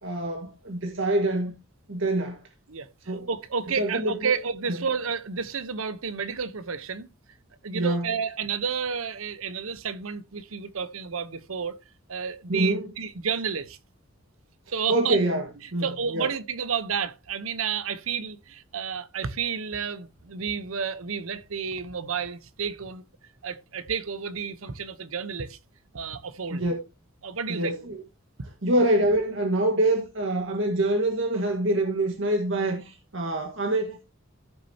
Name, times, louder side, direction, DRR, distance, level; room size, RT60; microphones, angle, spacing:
voice 1, 0.0-1.5 1.9-2.4 3.1-3.3 3.8-4.3 7.7-8.0 12.5-12.8 14.9-15.5 15.7-16.3 26.5-26.7 27.5-28.0 28.6-34.0, right 1 dB, 65° right, 1.6 m, -25 dB
voice 2, 2.7-7.1 7.6-11.8 12.1-13.8 14.7-15.2 15.8-23.0 23.4-25.6 25.9-26.6 27.2-27.7, right 6 dB, 80° right, 0.9 m, -31 dB
15.0 x 6.4 x 2.8 m
head